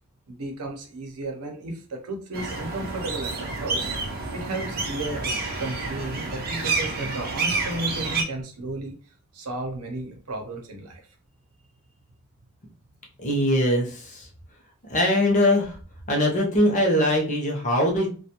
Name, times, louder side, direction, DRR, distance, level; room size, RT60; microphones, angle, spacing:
voice 1, 0.3-3.9 4.3-5.3 5.6-9.0 9.3-11.0, right 2 dB, 85° right, 3 dB, 0.7 m, -33 dB
sound 1, 2.3-8.2, right 3 dB, 40° right, 0.5 m, -29 dB
voice 2, 13.2-14.3 14.9-15.8 16.1-18.1, left 1 dB, 35° left, 0 dB, 0.6 m, -21 dB
2.4 x 2.2 x 2.8 m, 0.40 s
head